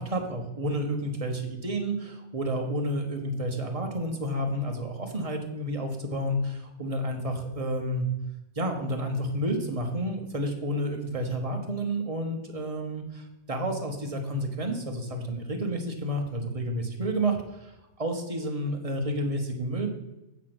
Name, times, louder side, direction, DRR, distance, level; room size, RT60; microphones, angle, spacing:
voice 1, 0.0-8.0 8.6-17.7 18.0-19.9, right 1 dB, 30° right, 3 dB, 1.2 m, -30 dB
8.1 x 4.9 x 6.0 m, 0.97 s
omnidirectional pair, 1.4 m